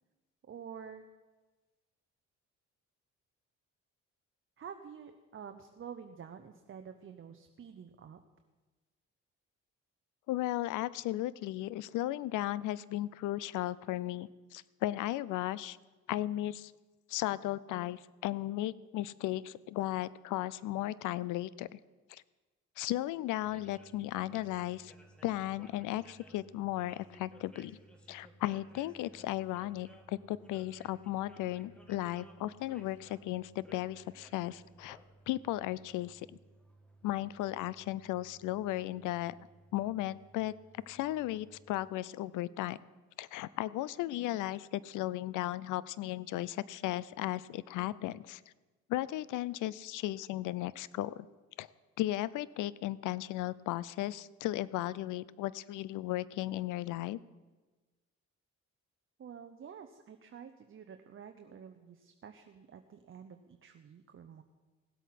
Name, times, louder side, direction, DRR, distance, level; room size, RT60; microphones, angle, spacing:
voice 1, 0.5-1.1 4.6-8.2 59.2-64.4, right 7 dB, 45° right, 7 dB, 0.8 m, -49 dB
voice 2, 10.3-15.8 16.1-16.7 17.1-21.8 22.1-22.2 22.8-24.9 25.2-27.8 28.1-35.0 35.3-36.4 37.0-39.3 39.7-40.5 40.9-42.8 43.2-48.4 48.9-51.3 51.6-51.7 52.0-57.2, left 15 dB, 85° left, 20 dB, 0.5 m, -35 dB
sound 1, 23.4-41.9, right 1 dB, 5° left, 1.8 m, -59 dB
17.0 x 8.2 x 5.8 m, 1.2 s
cardioid pair, 90°, 30 cm